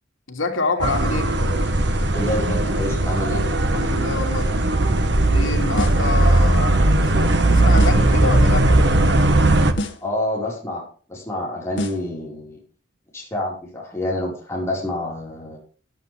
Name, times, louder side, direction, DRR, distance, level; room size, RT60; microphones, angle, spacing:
voice 1, 0.3-1.3 3.7-4.5 5.3-8.7, left 3 dB, 85° left, 3 dB, 2.9 m, -27 dB
sound 1, 0.8-9.7, right 1 dB, 60° right, 1.5 m, -18 dB
voice 2, 2.1-3.5 10.0-12.6 13.1-15.6, left 1 dB, 15° left, -4 dB, 5.0 m, -27 dB
sound 2, 5.8-6.2 7.8-8.2 9.8-10.2 11.8-12.2, left 1 dB, 65° left, 2.0 m, -29 dB
14.5 x 11.5 x 3.5 m, 0.41 s
head